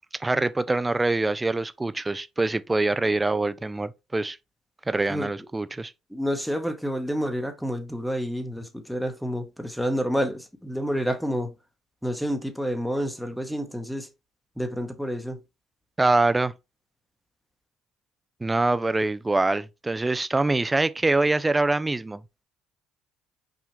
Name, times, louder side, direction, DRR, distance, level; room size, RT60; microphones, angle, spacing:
voice 1, 0.2-4.4 4.9-5.9 16.0-16.5 18.4-22.2, right 2 dB, 15° right, 0.4 m, -24 dB
voice 2, 6.1-11.5 12.0-14.1 14.6-15.4, equal, ahead, 0.9 m, -29 dB
5.7 x 2.4 x 3.0 m
hypercardioid pair, 65°, 0 cm